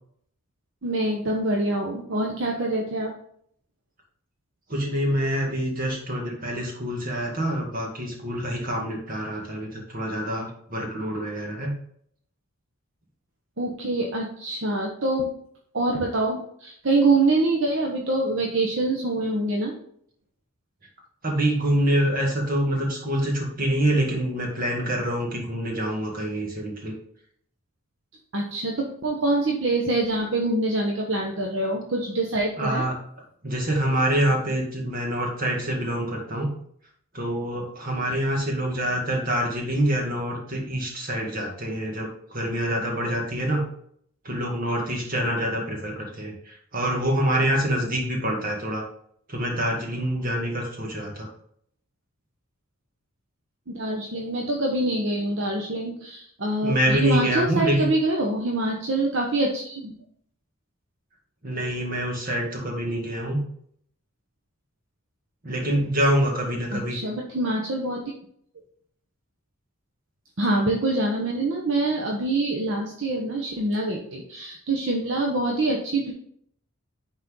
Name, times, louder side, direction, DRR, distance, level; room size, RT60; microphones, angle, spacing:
voice 1, 0.8-3.1 13.6-15.3 15.7-19.7 28.3-32.8 53.7-60.0 66.7-68.1 70.4-76.1, right 2 dB, 60° right, 0 dB, 0.9 m, -25 dB
voice 2, 4.7-11.7 21.2-26.9 32.6-32.9 33.4-36.5 37.1-43.7 44.2-48.8 49.3-51.3 56.6-57.9 61.4-63.4 65.4-67.0, equal, 40° right, -1 dB, 2.0 m, -26 dB
9.8 x 4.2 x 3.7 m, 0.66 s
head